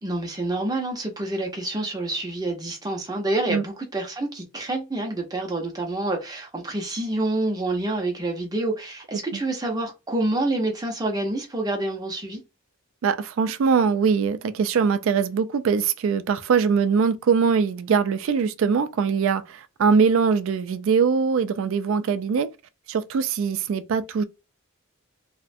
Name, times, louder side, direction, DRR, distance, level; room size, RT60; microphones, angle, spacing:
voice 1, 0.0-12.4, right 2 dB, 20° right, 0.6 m, -27 dB
voice 2, 13.0-22.5 22.9-24.2, right 6 dB, 65° right, 0.3 m, -22 dB
2.4 x 2.1 x 2.5 m
head